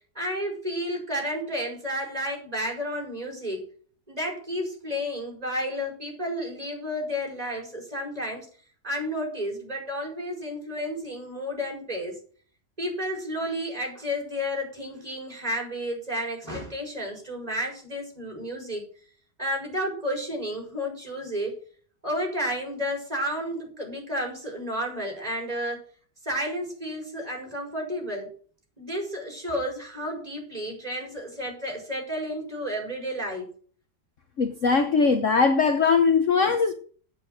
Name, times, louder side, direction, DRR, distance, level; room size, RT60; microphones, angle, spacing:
voice 1, 0.1-3.7 4.1-8.5 8.8-12.2 12.8-18.8 19.4-21.5 22.0-25.8 26.2-28.3 28.8-33.5, equal, 20° right, 4.9 m, -31 dB
voice 2, 34.4-36.7, left 5 dB, 50° left, 1.1 m, -21 dB
9.0 x 8.9 x 6.3 m
omnidirectional pair, 1.9 m